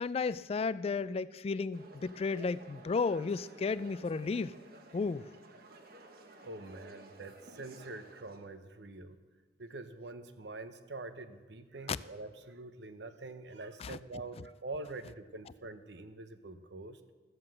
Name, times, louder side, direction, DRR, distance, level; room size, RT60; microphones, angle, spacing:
voice 1, 0.0-4.5 4.9-5.3 11.9-12.0 13.8-14.0, left 4 dB, 35° left, 0.3 m, -33 dB
sound 1, 1.7-8.5, right 2 dB, 55° right, 1.1 m, -55 dB
voice 2, 6.4-9.2 9.6-17.0, right 2 dB, 80° right, 0.9 m, -45 dB
13.5 x 7.7 x 7.6 m
head